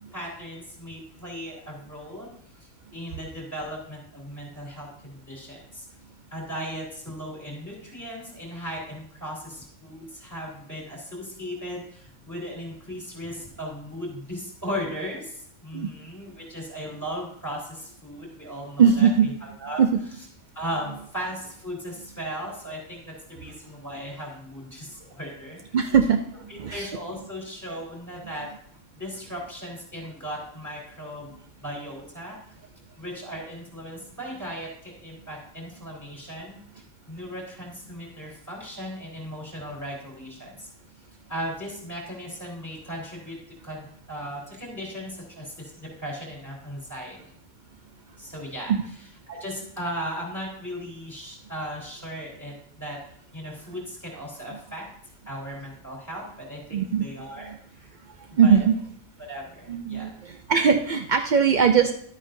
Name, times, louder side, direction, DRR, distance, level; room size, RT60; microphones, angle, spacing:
voice 1, 0.1-2.3 2.9-5.9 6.3-19.8 20.6-25.8 26.5-28.5 29.0-31.3 31.6-32.5 33.0-36.6 37.1-40.7 41.3-43.4 43.6-47.2 48.2-53.0 53.3-54.8 55.3-58.0 58.3-58.6 59.3-60.1, equal, 10° left, -3 dB, 3.8 m, -37 dB
voice 2, 18.8-19.3 19.8-19.9 25.7-26.2 26.6-26.9 48.7-48.8 56.7-57.1 57.5-57.6 58.4-58.7 59.7-61.9, right 7 dB, 75° right, 6 dB, 0.4 m, -20 dB
12.0 x 8.8 x 2.6 m, 0.65 s
omnidirectional pair, 1.4 m